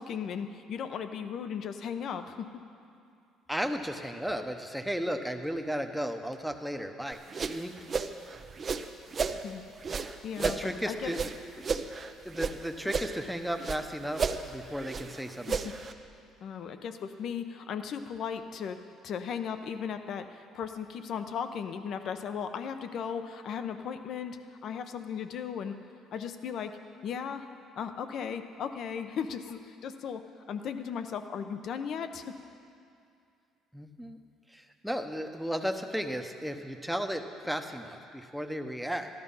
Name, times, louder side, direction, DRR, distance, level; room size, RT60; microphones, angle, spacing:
voice 1, 0.0-2.5 9.4-9.6 10.2-11.1 15.5-15.7 16.4-25.7 26.1-26.8 27.0-27.5 27.8-32.2, left 7 dB, 60° left, 9 dB, 0.8 m, -36 dB
voice 2, 3.5-7.2 7.5-7.8 10.4-11.2 12.2-15.5 33.7-34.2 34.5-39.1, equal, ahead, 5 dB, 1.0 m, -34 dB
sound 1, 7.1-9.4 9.8-12.6 12.8-13.8 14.1-15.9, right 5 dB, 35° right, 0.7 m, -33 dB
13.5 x 12.0 x 5.6 m, 2.5 s
cardioid pair, 95°, 0 cm